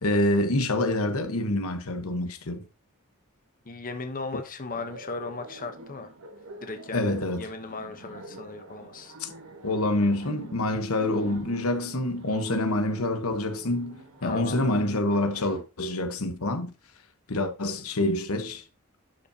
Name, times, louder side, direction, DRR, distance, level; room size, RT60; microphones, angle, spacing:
voice 1, 0.0-2.6 6.9-7.5 9.2-9.3 9.6-16.7 17.3-18.6, left 1 dB, 75° left, 1.1 m, -26 dB
voice 2, 3.6-6.1 6.6-9.1 14.2-14.8, left 3 dB, 40° left, 0.9 m, -37 dB
Laughter, 4.7-15.6, right 1 dB, 90° right, 1.8 m, -46 dB
11.5 x 5.5 x 2.8 m
head